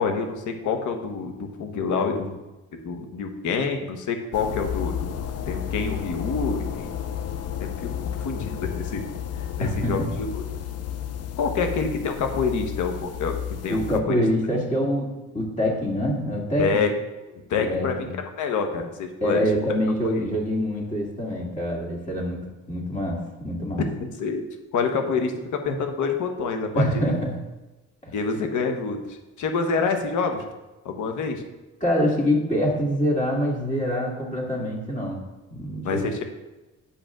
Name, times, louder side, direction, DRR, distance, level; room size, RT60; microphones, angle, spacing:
voice 1, 0.0-2.4 2.7-5.1 5.5-6.9 7.6-7.9 8.2-9.0 9.6-10.4 11.4-13.4 13.6-14.2 16.6-16.9 17.5-18.1 18.4-19.5 20.0-20.2 24.0-24.4 24.7-26.9 28.1-30.4 30.8-31.4 35.8-36.2, left 5 dB, 75° left, 5 dB, 1.2 m, -27 dB
sound 1, 4.3-14.0, left 9 dB, 55° left, 0.7 m, -32 dB
voice 2, 9.6-10.1 13.7-16.8 17.7-18.1 19.2-23.8 26.8-27.4 28.0-28.1 31.8-35.2 35.5-36.0, equal, 25° left, -3 dB, 2.3 m, -25 dB
8.4 x 5.2 x 3.7 m, 1.1 s
cardioid pair, 90°, 30 cm